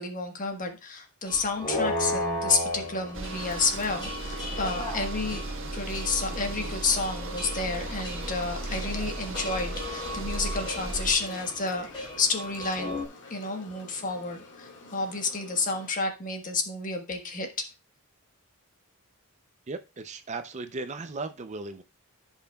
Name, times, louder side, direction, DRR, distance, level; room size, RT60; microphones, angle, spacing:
voice 1, 0.0-5.4 5.7-13.0 13.3-17.5, left 4 dB, 35° left, 1.4 m, -30 dB
sound 1, 1.3-13.0, left 1 dB, 20° left, 3.1 m, -36 dB
sound 2, 2.7-15.9, left 3 dB, 55° left, 2.1 m, -48 dB
sound 3, 3.1-11.1, right 2 dB, 60° right, 1.3 m, -36 dB
voice 2, 19.7-21.8, right 3 dB, 30° right, 0.5 m, -36 dB
14.0 x 5.6 x 2.3 m
head